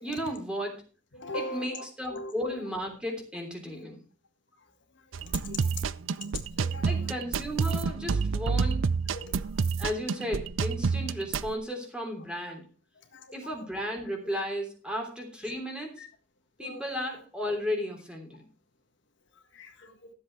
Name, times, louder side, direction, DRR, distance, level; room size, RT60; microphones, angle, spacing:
voice 1, 0.0-0.8 1.3-4.0 6.8-8.8 9.8-12.6 13.3-16.0 16.6-18.5, equal, 5° right, 2 dB, 3.2 m, -34 dB
voice 2, 1.1-2.3 5.3-5.7 6.6-6.9 9.1-9.4 13.1-13.5 16.0-16.1 16.6-16.8 19.5-19.9, left 1 dB, 65° left, 6 dB, 1.6 m, -40 dB
sound 1, 5.1-11.5, right 5 dB, 85° right, 0.5 m, -29 dB
13.5 x 7.8 x 4.6 m, 0.35 s
head